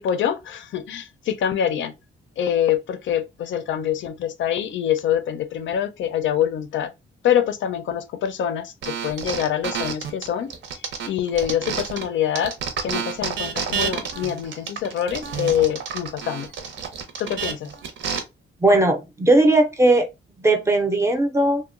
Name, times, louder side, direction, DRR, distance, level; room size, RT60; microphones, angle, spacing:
voice 1, 0.0-1.9 2.4-6.9 7.2-10.5 10.8-12.5 12.8-16.5 17.2-17.7, left 9 dB, 80° left, 0.4 m, -25 dB
sound 1, 8.8-12.1 12.4-18.2, right 6 dB, 80° right, 0.6 m, -29 dB
voice 2, 18.6-20.1 20.4-21.6, right 2 dB, 15° right, 0.4 m, -18 dB
2.9 x 2.1 x 2.4 m
wide cardioid pair, 145°, 19 cm